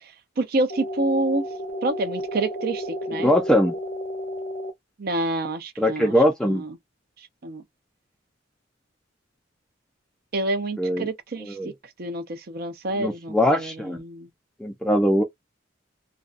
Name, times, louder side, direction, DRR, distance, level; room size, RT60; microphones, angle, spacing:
voice 1, 0.4-1.4 1.8-3.3 5.0-6.1 6.4-6.8 7.4-7.6 10.3-11.6 12.0-14.3, right 2 dB, 50° right, 0.5 m, -27 dB
sound 1, 0.7-4.7, equal, 75° left, 0.9 m, -32 dB
voice 2, 3.2-3.8 5.8-6.6 10.8-11.1 11.4-11.7 13.0-14.0 14.6-15.2, equal, 5° left, 0.3 m, -21 dB
2.5 x 2.2 x 2.4 m
head